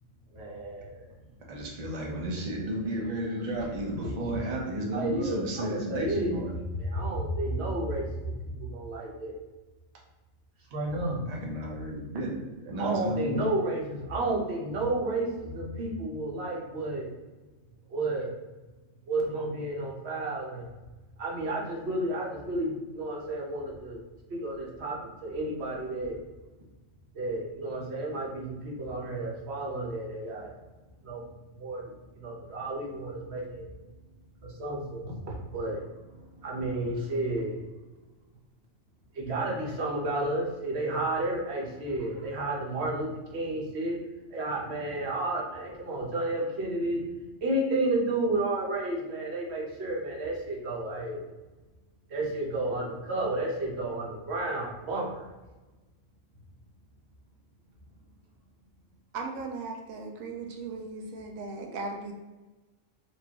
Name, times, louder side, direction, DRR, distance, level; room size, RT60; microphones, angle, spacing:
voice 1, 0.3-1.1 4.0-4.1 4.9-6.4 6.8-9.4 10.7-11.3 12.8-17.1 17.9-18.4 19.1-20.7 21.2-24.0 24.3-26.2 27.1-30.6 31.0-31.2 31.6-33.7 34.4-35.9 36.4-37.6 39.1-44.0 44.3-47.0 47.4-51.2 52.1-55.2, right 2 dB, 55° right, -2 dB, 1.1 m, -31 dB
voice 2, 1.5-6.5 11.3-13.4 41.9-42.3, right 1 dB, 35° right, -2 dB, 0.7 m, -33 dB
voice 3, 59.1-62.1, right 3 dB, 85° right, 2 dB, 1.0 m, -37 dB
4.5 x 2.6 x 2.9 m, 1.2 s
omnidirectional pair, 1.4 m